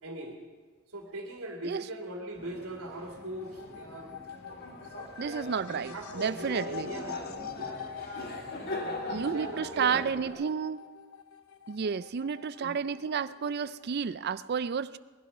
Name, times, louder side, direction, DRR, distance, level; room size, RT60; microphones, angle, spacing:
voice 1, 0.0-0.4 0.9-4.1 4.8-7.9 8.6-10.4 12.6-12.7, right 1 dB, 75° right, 1 dB, 2.4 m, -41 dB
sound 1, 2.3-10.3, left 1 dB, 45° left, 2.4 m, -41 dB
sound 2, 2.7-14.0, left 8 dB, 75° left, 0.8 m, -46 dB
voice 2, 5.2-6.9 9.1-10.8 11.7-15.0, right 6 dB, 50° right, 16 dB, 0.4 m, -31 dB
20.5 x 12.0 x 5.5 m, 1.5 s
head